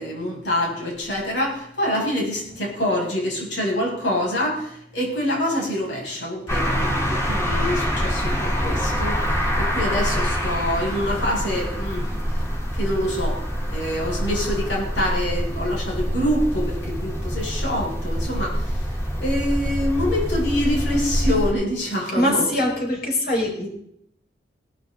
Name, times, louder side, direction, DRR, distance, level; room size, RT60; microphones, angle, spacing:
voice 1, 0.0-12.5 12.7-13.4 13.7-22.5, left 1 dB, 90° left, -2 dB, 6.6 m, -26 dB
sound 1, 6.5-21.5, equal, 15° left, 4.0 m, -25 dB
voice 2, 22.1-23.7, left 1 dB, 55° left, -1 dB, 5.4 m, -22 dB
18.5 x 12.5 x 3.9 m, 0.72 s
head